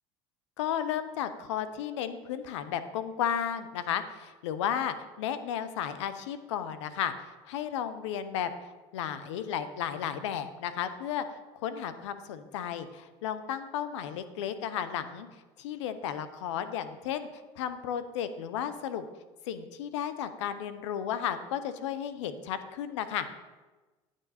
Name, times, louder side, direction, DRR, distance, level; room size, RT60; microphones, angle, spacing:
voice 1, 0.6-8.5 8.9-15.3 15.6-17.3 17.6-19.1 19.4-23.3, left 9 dB, 85° left, 11 dB, 0.7 m, -33 dB
10.5 x 6.3 x 4.2 m, 1.2 s
hypercardioid pair, 85°, 15 cm